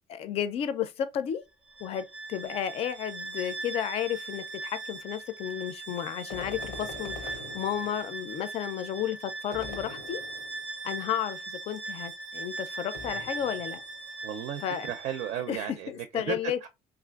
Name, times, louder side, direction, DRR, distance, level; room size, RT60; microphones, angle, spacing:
voice 1, 0.1-1.4 1.8-10.2 10.8-13.8 14.6-14.9 15.5-16.6, left 10 dB, 50° left, 0.4 m, -33 dB
Bowed string instrument, 1.6-15.5, right 3 dB, 10° right, 0.6 m, -40 dB
sound 1, 6.3-8.3 9.5-10.7 12.9-13.9, left 4 dB, 90° left, 0.7 m, -43 dB
voice 2, 14.2-16.7, right 9 dB, 70° right, 0.4 m, -35 dB
3.2 x 2.5 x 2.3 m
cardioid pair, 165°, 13 cm